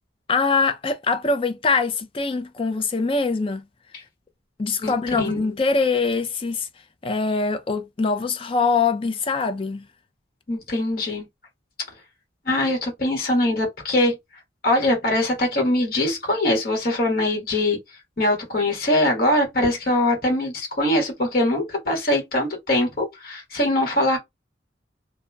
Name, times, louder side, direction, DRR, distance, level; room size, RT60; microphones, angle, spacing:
voice 1, 0.3-3.6 4.6-6.7 7.0-9.8, left 4 dB, 30° left, 0.4 m, -23 dB
voice 2, 4.8-5.4 10.5-11.2 12.4-14.2 14.6-17.8 18.2-24.2, left 1 dB, 50° left, 1.2 m, -22 dB
2.8 x 2.1 x 2.2 m
head